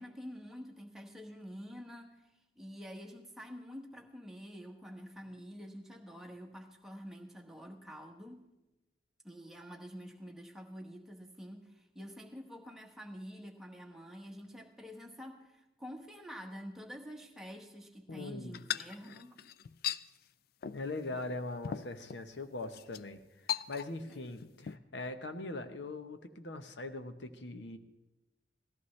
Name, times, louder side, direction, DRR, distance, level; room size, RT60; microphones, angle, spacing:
voice 1, 0.0-8.5 9.2-19.4 21.1-21.3 24.1-24.3, equal, 5° right, 1 dB, 1.2 m, -48 dB
voice 2, 18.1-18.6 20.7-27.8, left 2 dB, 90° left, 8 dB, 1.0 m, -41 dB
sound 1, 18.5-20.0 20.6-20.9 21.2-21.3 21.6-22.2 22.7-23.0 23.5-24.1 24.4-24.8, left 9 dB, 60° left, 0.3 m, -38 dB
18.0 x 14.0 x 3.2 m, 1.0 s
head